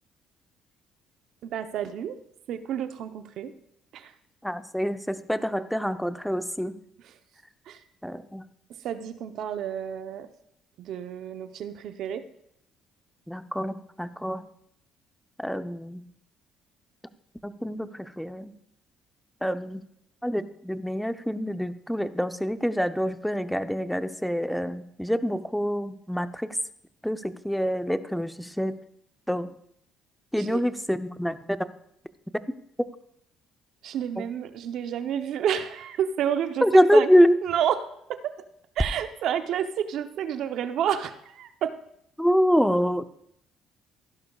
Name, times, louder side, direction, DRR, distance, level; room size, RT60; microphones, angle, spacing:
voice 1, 1.4-2.2 2.5-3.5 3.9-4.1 7.0-7.1 7.7-7.8 8.8-10.3 10.8-12.2 30.4-30.6 33.8-36.7 36.9-37.1 37.4-38.4 38.8-41.8, right 9 dB, 70° right, 9 dB, 0.8 m, -30 dB
voice 2, 4.4-6.7 8.0-8.4 13.3-14.4 15.4-16.0 17.4-18.5 19.4-19.8 20.2-26.5 27.0-28.8 29.3-29.5 30.3-31.4 34.2-34.3 36.6-37.3 42.2-43.0, equal, ahead, 10 dB, 0.7 m, -25 dB
15.5 x 11.5 x 2.4 m, 0.75 s
supercardioid pair, 70°, 0 cm